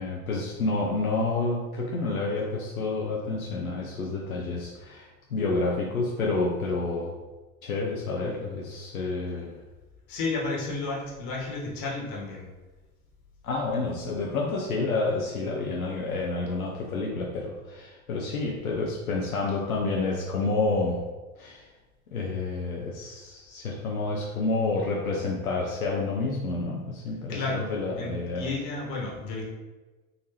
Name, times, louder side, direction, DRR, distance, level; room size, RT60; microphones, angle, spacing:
voice 1, 0.0-7.1 7.6-9.5 13.4-21.0 21.4-21.7 22.1-28.5, left 3 dB, 85° left, -2 dB, 0.6 m, -29 dB
voice 2, 10.1-12.4 27.3-29.4, left 3 dB, 50° left, -3 dB, 1.3 m, -32 dB
3.9 x 2.6 x 2.9 m, 1.2 s
figure-of-eight pair, 70°, 41 cm